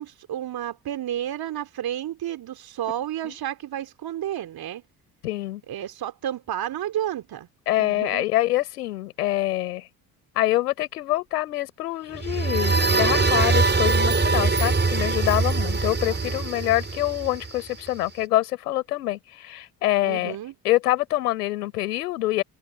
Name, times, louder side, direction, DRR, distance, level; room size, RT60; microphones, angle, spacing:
voice 1, 0.0-4.8 5.7-7.5 7.8-8.2 15.6-15.7 16.0-16.3 20.0-20.5, right 11 dB, 50° right, 3.2 m, -31 dB
voice 2, 5.2-5.6 7.7-9.9 10.3-20.4 20.6-22.4, left 16 dB, 75° left, 4.6 m, -25 dB
sound 1, 12.1-17.9, right 3 dB, 25° right, 7.2 m, -22 dB
open air
figure-of-eight pair, 50°, 46 cm